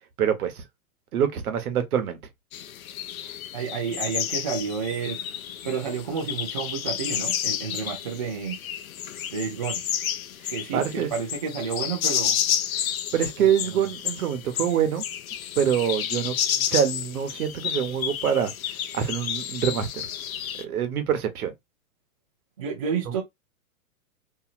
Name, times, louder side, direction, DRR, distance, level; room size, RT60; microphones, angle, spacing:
voice 1, 0.2-0.6 1.1-2.2 10.7-11.1 13.1-15.0 15.6-16.3 16.7-18.5 18.9-20.1 20.6-21.5 23.1-23.2, right 9 dB, 75° right, 1.0 m, -25 dB
sound 1, 2.5-20.6, left 10 dB, 65° left, 0.6 m, -31 dB
voice 2, 3.5-5.2 5.6-8.6 9.3-9.8 10.5-12.4 13.7-13.9 22.6-23.2, right 6 dB, 25° right, 0.4 m, -30 dB
2.9 x 2.7 x 2.4 m
hypercardioid pair, 165°, 44 cm